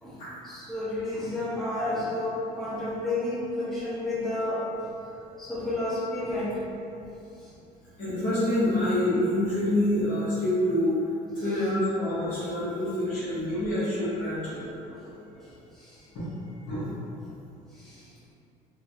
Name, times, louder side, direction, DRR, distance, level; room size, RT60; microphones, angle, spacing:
voice 1, 0.4-4.6 5.4-6.6 13.5-13.6 14.5-14.6 14.9-15.0, left 2 dB, ahead, -9 dB, 0.6 m, -31 dB
voice 2, 8.0-11.0 11.4-14.6 16.1-16.2 16.7-16.8, left 1 dB, 60° left, -11 dB, 0.9 m, -26 dB
3.0 x 2.3 x 2.6 m, 2.7 s
cardioid pair, 155°, 15 cm